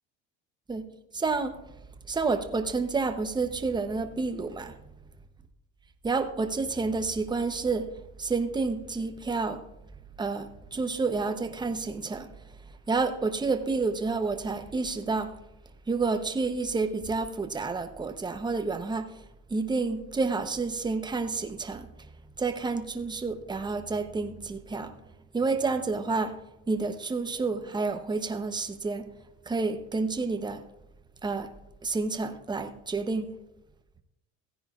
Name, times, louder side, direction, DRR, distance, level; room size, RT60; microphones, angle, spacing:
voice 1, 1.1-1.5 2.1-4.8 6.0-7.9 8.2-9.6 10.2-12.3 12.9-15.3 15.9-19.1 19.5-21.9 22.4-24.9 25.3-26.3 26.7-29.1 29.5-30.6 31.2-31.5 31.8-33.3, right 4 dB, 15° right, 0.8 m, -29 dB
15.5 x 10.0 x 2.4 m
supercardioid pair, 95°, 32 cm